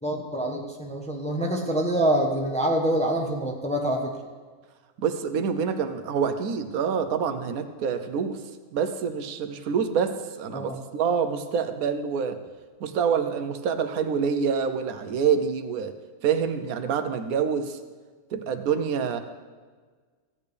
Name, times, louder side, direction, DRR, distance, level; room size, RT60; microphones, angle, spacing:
voice 1, 0.0-4.1 10.5-10.8, right 1 dB, 5° left, 1 dB, 0.8 m, -26 dB
voice 2, 5.0-8.4 8.7-12.4 12.8-15.9 16.2-17.8 18.3-19.2, right 6 dB, 80° right, 9 dB, 1.1 m, -26 dB
14.5 x 8.7 x 3.4 m, 1.5 s
omnidirectional pair, 1.5 m